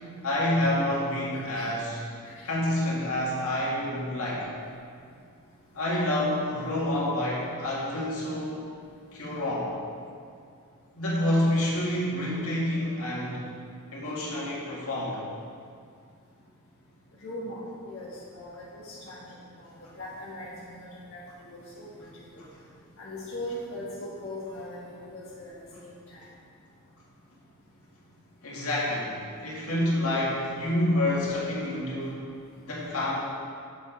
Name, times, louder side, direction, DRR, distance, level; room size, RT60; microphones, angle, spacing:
voice 1, 0.2-2.0 2.4-4.5 5.7-8.7 9.1-9.7 10.9-13.5 13.9-15.2 28.4-32.3 32.6-33.2, left 1 dB, 85° left, -5 dB, 1.9 m, -28 dB
voice 2, 17.2-18.1 18.3-19.3 19.6-22.1 22.3-22.4 23.0-26.2, left 1 dB, 60° left, -8 dB, 1.5 m, -40 dB
7.2 x 7.1 x 4.5 m, 2.3 s
head